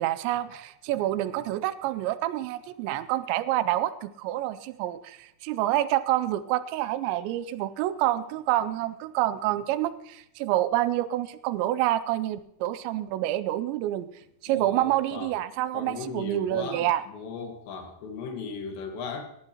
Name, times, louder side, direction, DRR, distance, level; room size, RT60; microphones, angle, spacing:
voice 1, 0.0-14.1 14.4-17.0, right 14 dB, 85° right, 14 dB, 2.9 m, -27 dB
voice 2, 14.5-15.4 15.7-19.2, left 5 dB, 80° left, 4 dB, 3.8 m, -37 dB
18.5 x 14.0 x 2.9 m, 0.74 s
omnidirectional pair, 5.1 m